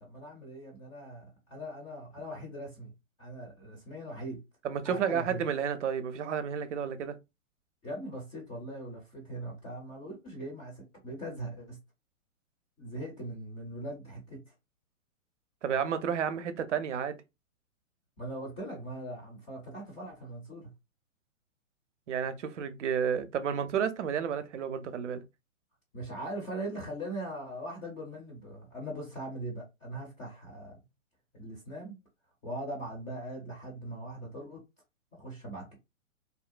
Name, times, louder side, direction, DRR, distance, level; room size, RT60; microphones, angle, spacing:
voice 1, 0.0-2.9 3.2-4.4 4.8-5.4 7.8-11.8 12.8-14.4 18.2-20.7 25.9-30.7 31.3-32.0 32.4-34.6 35.1-35.8, right 1 dB, 15° left, 0.5 m, -40 dB
voice 2, 4.6-7.2 15.6-17.2 22.1-25.2, right 7 dB, 60° right, 0.6 m, -31 dB
2.7 x 2.0 x 2.4 m
figure-of-eight pair, 120°, 41 cm